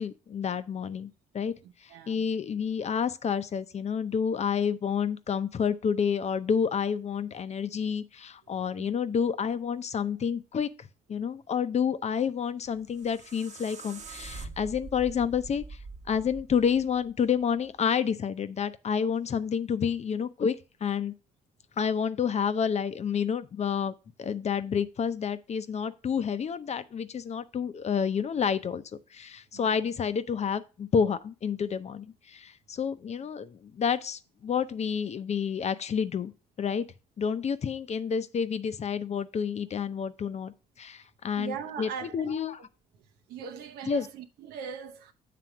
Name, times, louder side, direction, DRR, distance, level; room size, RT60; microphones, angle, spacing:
voice 1, 0.0-1.5 2.1-15.6 16.1-20.6 20.8-21.1 21.8-23.9 24.2-28.8 29.1-36.3 36.6-36.9 37.2-42.6 43.9-44.1, left 7 dB, 45° left, 0.6 m, -29 dB
voice 2, 1.6-2.2 8.8-8.9 29.5-29.9 41.4-42.4 42.9-45.1, right 7 dB, 85° right, 0.8 m, -41 dB
sound 1, 12.7-17.8, right 3 dB, 50° right, 1.0 m, -44 dB
7.7 x 3.4 x 5.9 m
cardioid pair, 80°, 16 cm